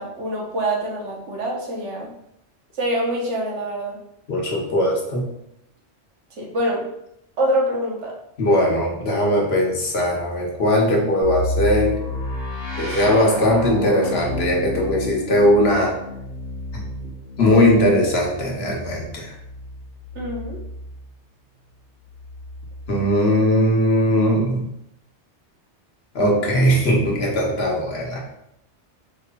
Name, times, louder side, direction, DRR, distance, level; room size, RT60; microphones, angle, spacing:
voice 1, 0.0-2.1 2.8-4.0 6.4-6.9 7.4-8.1 20.1-20.6, right 1 dB, 85° right, -1 dB, 1.2 m, -25 dB
voice 2, 4.3-5.3 8.4-12.0 12.8-15.9 17.4-19.3 22.9-24.7 26.1-28.2, left 1 dB, 65° left, -1 dB, 1.1 m, -19 dB
sound 1, 11.2-21.0 22.0-23.1, left 1 dB, 50° right, 1.6 m, -31 dB
4.9 x 3.0 x 2.2 m, 0.79 s
omnidirectional pair, 1.2 m